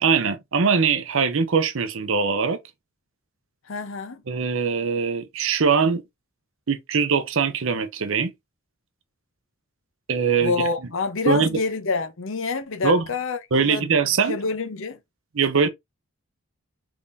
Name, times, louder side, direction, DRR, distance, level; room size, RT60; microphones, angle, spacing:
voice 1, 0.0-2.6 4.3-6.0 6.7-8.3 10.1-10.5 11.3-11.5 12.8-13.0 13.5-14.4 15.3-15.7, right 5 dB, 65° right, 0.6 m, -21 dB
voice 2, 3.7-4.2 10.4-13.9 14.3-15.0, left 4 dB, 60° left, 0.7 m, -27 dB
3.6 x 3.5 x 2.5 m
head